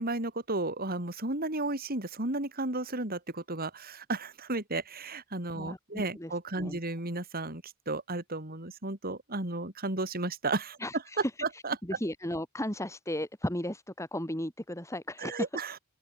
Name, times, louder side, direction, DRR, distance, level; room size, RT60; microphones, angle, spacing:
voice 1, 0.0-10.8 11.4-11.8 15.2-15.8, right 2 dB, 45° right, 3.9 m, -33 dB
voice 2, 5.5-6.8 10.8-15.5, left 1 dB, 15° left, 7.3 m, -35 dB
open air
head